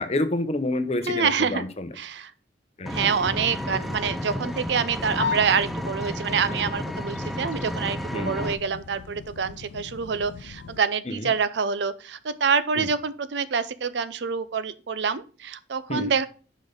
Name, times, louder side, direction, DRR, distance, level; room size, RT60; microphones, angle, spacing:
voice 1, 0.0-1.9 2.8-2.9 8.1-8.4 11.1-11.3 12.8-12.9 15.9-16.1, left 2 dB, 35° left, 10 dB, 0.8 m, -28 dB
voice 2, 1.1-1.6 2.0-2.3 2.9-16.3, right 6 dB, 70° right, 15 dB, 0.5 m, -26 dB
sound 1, 2.9-10.8, left 6 dB, 80° left, 0.4 m, -38 dB
Vehicle, 2.9-8.5, equal, ahead, 0.5 m, -32 dB
6.3 x 5.2 x 5.1 m, 0.37 s
head